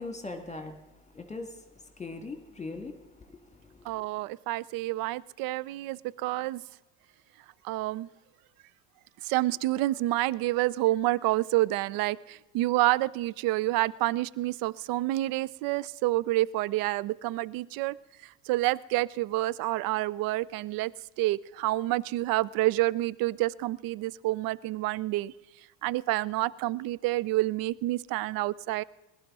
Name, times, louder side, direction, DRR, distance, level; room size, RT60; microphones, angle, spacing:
voice 1, 0.0-4.0, left 3 dB, 15° left, 5 dB, 1.8 m, -41 dB
voice 2, 3.9-6.6 7.6-8.1 9.2-17.9 18.5-20.9 21.2-25.3 25.8-28.8, right 17 dB, 45° right, 23 dB, 0.6 m, -28 dB
21.0 x 12.0 x 3.7 m, 1.1 s
figure-of-eight pair, 65°, 48 cm